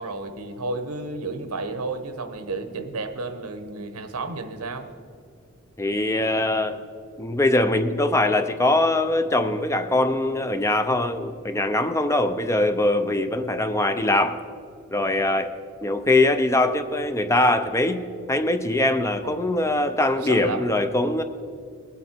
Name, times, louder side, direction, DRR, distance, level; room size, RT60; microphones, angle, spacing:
voice 1, 0.0-4.9 19.2-19.4 20.2-20.7, right 3 dB, 85° right, 9 dB, 1.0 m, -32 dB
voice 2, 5.8-6.8 7.2-14.4 14.9-15.5 15.8-18.0 18.3-21.2, left 2 dB, 15° left, 9 dB, 0.5 m, -22 dB
20.5 x 8.3 x 4.4 m, 2.4 s
head